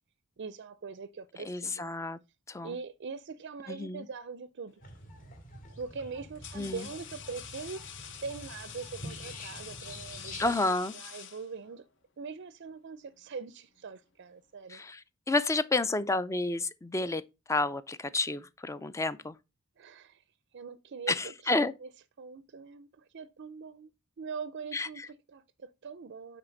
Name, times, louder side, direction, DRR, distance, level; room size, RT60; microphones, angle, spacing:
voice 1, 0.4-1.9 2.6-4.8 5.7-7.9 8.2-11.8 12.2-14.8 19.8-20.2 20.5-21.9 22.2-23.9 24.2-26.4, right 5 dB, 50° right, 0.5 m, -42 dB
voice 2, 1.5-2.2 2.5-2.7 3.7-4.0 6.6-6.9 10.4-10.9 14.7-15.0 15.3-17.2 17.5-19.3 21.1-21.7 24.7-24.9, left 2 dB, 15° left, 0.4 m, -30 dB
sound 1, 4.8-5.1 5.9-11.9, left 8 dB, 55° left, 1.0 m, -47 dB
sound 2, 4.8-10.5, left 1 dB, 40° left, 2.1 m, -47 dB
9.0 x 4.3 x 3.9 m
head